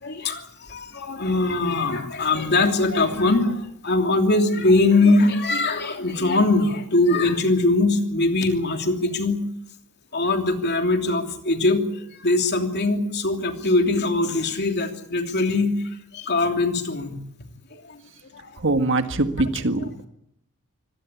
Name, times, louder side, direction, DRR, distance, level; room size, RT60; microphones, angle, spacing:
voice 1, 0.0-9.4 10.1-17.2 17.8-18.0 18.3-18.6, left 2 dB, 50° left, 5 dB, 3.1 m, -22 dB
voice 2, 18.6-20.1, right 2 dB, 55° right, 8 dB, 1.8 m, -23 dB
25.5 x 18.0 x 8.4 m, 0.73 s
head